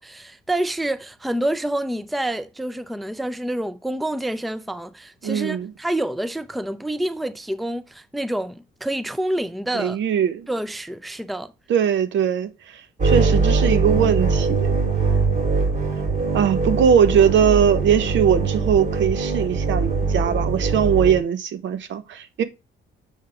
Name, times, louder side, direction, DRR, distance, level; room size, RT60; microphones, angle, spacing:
voice 1, 0.0-10.0 10.5-11.5, right 1 dB, ahead, 0.5 m, -27 dB
voice 2, 5.2-5.7 9.7-10.5 11.7-14.8 16.3-22.4, right 8 dB, 70° right, 0.9 m, -20 dB
sound 1, 13.0-21.2, right 4 dB, 45° right, 2.5 m, -22 dB
6.5 x 3.4 x 4.7 m
cardioid pair, 90°, 20 cm